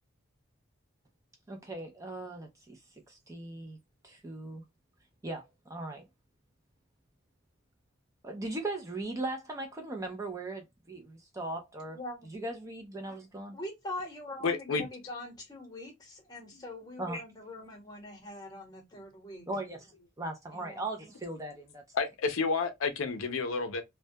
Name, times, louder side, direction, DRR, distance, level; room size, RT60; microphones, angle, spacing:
voice 1, 1.5-2.8 3.1-3.8 4.0-4.6 5.2-5.4 5.7-6.0 8.2-12.0 12.3-13.6 17.0-17.2 19.5-19.8 20.2-21.8, right 2 dB, 15° right, 0.4 m, -38 dB
voice 2, 11.9-12.3 13.5-19.5 20.5-20.8, left 1 dB, 20° left, 0.9 m, -43 dB
voice 3, 14.4-14.8 21.9-23.8, left 4 dB, 75° left, 0.5 m, -30 dB
2.2 x 2.1 x 2.6 m
head